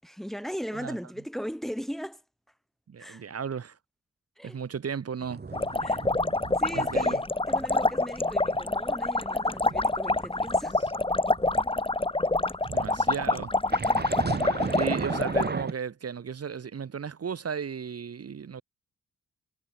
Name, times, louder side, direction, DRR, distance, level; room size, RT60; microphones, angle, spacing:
voice 1, 0.0-2.2 3.0-3.2 4.4-4.6 5.8-6.0 6.6-10.8, equal, ahead, 5.6 m, -38 dB
voice 2, 2.9-3.8 4.4-5.4 6.7-7.2 12.7-13.5 14.3-18.6, right 7 dB, 55° right, 3.6 m, -35 dB
sound 1, 5.2-7.1 7.5-7.7 8.1-11.7 12.6-15.7, right 4 dB, 35° right, 3.5 m, -36 dB
sound 2, 5.5-15.5, left 2 dB, 20° left, 4.5 m, -26 dB
cardioid pair, 70°, 29 cm